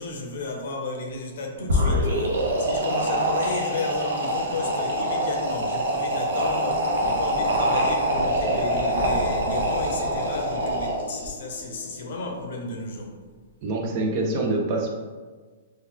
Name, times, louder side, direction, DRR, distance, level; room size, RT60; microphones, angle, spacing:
voice 1, 0.0-13.1, left 3 dB, 65° left, 1 dB, 0.6 m, -33 dB
sound 1, 1.6-11.3, equal, 85° right, 0.7 m, -25 dB
sound 2, 2.6-12.3, left 2 dB, 5° right, 0.9 m, -43 dB
voice 2, 13.6-14.9, right 2 dB, 35° right, 1 dB, 0.5 m, -25 dB
3.0 x 2.2 x 3.6 m, 1.4 s
hypercardioid pair, 155°, 0 cm